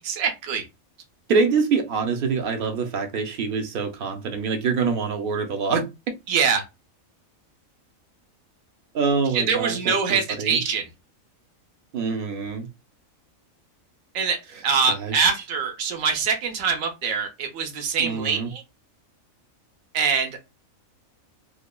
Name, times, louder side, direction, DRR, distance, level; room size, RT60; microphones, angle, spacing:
voice 1, 0.1-0.6 6.3-6.6 9.3-10.8 14.1-14.4 14.6-18.6 19.9-20.4, right 6 dB, 75° right, 1.1 m, -24 dB
voice 2, 1.3-5.9 8.9-10.6 11.9-12.7 14.8-15.1 18.0-18.5, right 5 dB, 60° right, 0.6 m, -25 dB
3.2 x 2.1 x 2.2 m
omnidirectional pair, 1.4 m